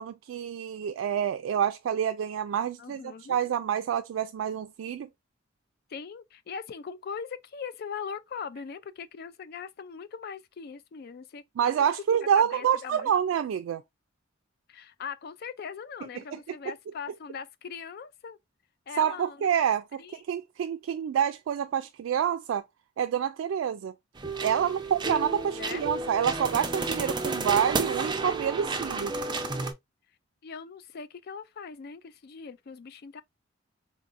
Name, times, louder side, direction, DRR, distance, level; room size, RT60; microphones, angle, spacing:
voice 1, 0.0-5.1 11.6-13.8 16.3-16.4 19.0-22.6 23.0-23.9 24.4-29.1, right 8 dB, 90° right, 0.3 m, -27 dB
voice 2, 2.8-3.4 5.9-11.4 11.8-11.9 12.4-13.1 14.7-18.4 18.9-19.5 20.0-20.2 24.6-24.7 25.4-26.1 30.4-33.2, left 6 dB, 55° left, 0.4 m, -40 dB
sound 1, 24.1-29.7, right 3 dB, 25° right, 0.5 m, -31 dB
3.9 x 2.6 x 2.4 m
head